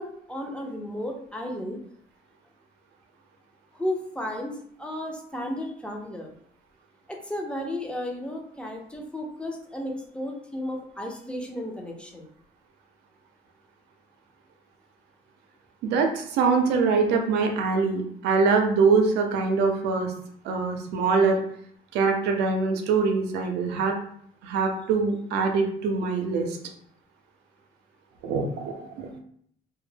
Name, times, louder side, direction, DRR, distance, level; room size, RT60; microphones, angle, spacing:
voice 1, 0.0-1.8 3.7-6.3 7.1-12.3, left 1 dB, 5° left, 1 dB, 0.5 m, -34 dB
voice 2, 15.8-20.1 20.4-21.4 21.9-24.0 24.4-26.6 28.2-29.2, right 4 dB, 85° right, 4 dB, 0.5 m, -23 dB
2.2 x 2.1 x 3.2 m, 0.65 s
cardioid pair, 110°, 17 cm